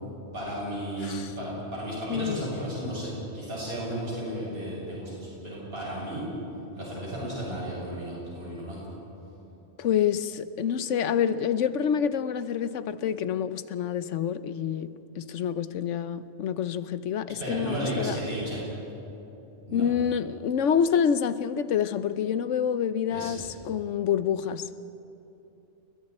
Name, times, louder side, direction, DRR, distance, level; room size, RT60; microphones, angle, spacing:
voice 1, 0.3-6.2 6.7-8.8 17.4-18.6 19.7-19.8 23.1-23.3, right 1 dB, 50° right, 7.0 m, -33 dB
voice 2, 1.0-1.3 2.1-2.5 9.8-18.2 19.7-24.8, left 8 dB, 80° left, 1.1 m, -27 dB
29.5 x 21.5 x 4.3 m
omnidirectional pair, 1.3 m